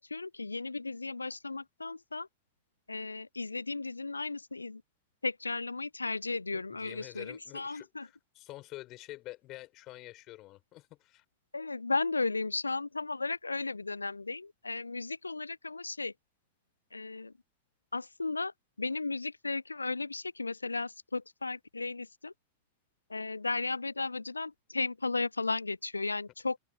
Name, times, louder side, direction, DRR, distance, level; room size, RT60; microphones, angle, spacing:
voice 1, 0.0-2.3 2.9-4.8 5.2-8.1 11.5-16.1 16.9-17.3 17.9-22.3 23.1-26.6, left 3 dB, 80° left, 0.6 m, -35 dB
voice 2, 6.5-11.2, left 17 dB, 35° left, 5.6 m, -48 dB
figure-of-eight pair, 90°, 0 cm